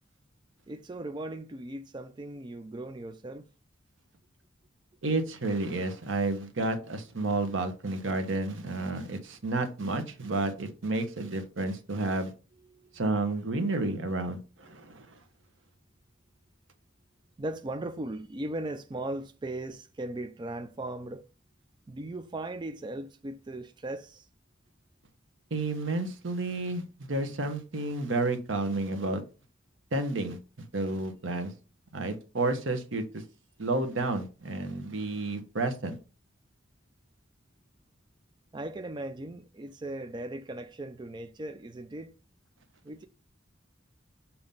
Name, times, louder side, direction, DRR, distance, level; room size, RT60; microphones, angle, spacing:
voice 1, 0.7-3.5 12.7-13.0 17.4-21.2 21.9-24.3 38.5-42.1 42.8-43.1, right 1 dB, 25° right, 0.4 m, -38 dB
voice 2, 5.0-12.3 12.9-15.2 25.5-29.2 29.9-30.4 30.7-31.5 31.9-33.2 33.6-36.0, right 2 dB, 75° right, 1.1 m, -31 dB
7.1 x 2.9 x 5.3 m
head